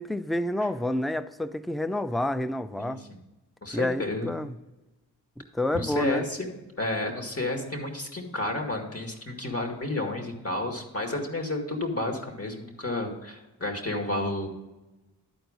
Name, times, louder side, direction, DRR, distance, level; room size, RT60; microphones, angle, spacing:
voice 1, 0.0-3.0 3.7-4.6 5.4-6.3, left 1 dB, ahead, 0.4 m, -29 dB
voice 2, 2.8-3.2 3.6-4.3 5.7-6.5 6.8-14.5, left 2 dB, 35° left, 2.1 m, -31 dB
11.5 x 4.5 x 5.1 m
cardioid pair, 40°, 40 cm